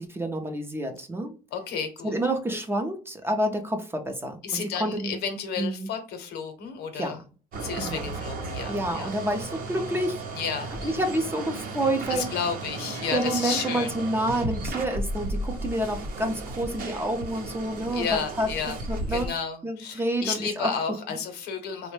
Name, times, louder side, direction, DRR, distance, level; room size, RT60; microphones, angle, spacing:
voice 1, 0.0-1.3 2.0-5.2 5.6-5.9 6.9-7.1 7.8-8.0 8.7-10.2 10.8-12.2 13.1-18.1 18.4-18.5 18.9-19.3 19.6-20.7, right 1 dB, 15° right, 5 dB, 0.5 m, -28 dB
voice 2, 1.5-2.1 2.4-2.6 4.4-7.2 7.6-9.1 10.3-11.0 12.1-13.9 17.9-18.8 19.1-21.9, left 6 dB, 80° left, 6 dB, 0.7 m, -32 dB
sound 1, 7.5-19.3, right 2 dB, 60° right, 0.7 m, -34 dB
3.1 x 2.1 x 3.1 m, 0.36 s
cardioid pair, 110°, 17 cm